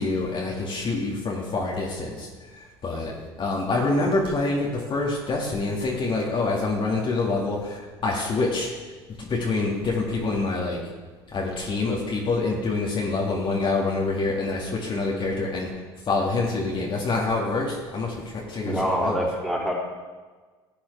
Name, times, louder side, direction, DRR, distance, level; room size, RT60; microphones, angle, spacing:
voice 1, 0.0-3.1 3.4-8.7 9.2-10.8 11.3-15.7 16.1-19.3, left 3 dB, 35° left, -3 dB, 2.1 m, -26 dB
voice 2, 18.6-19.7, equal, ahead, -3 dB, 3.2 m, -25 dB
16.0 x 8.5 x 3.4 m, 1.4 s
hypercardioid pair, 65°, 14 cm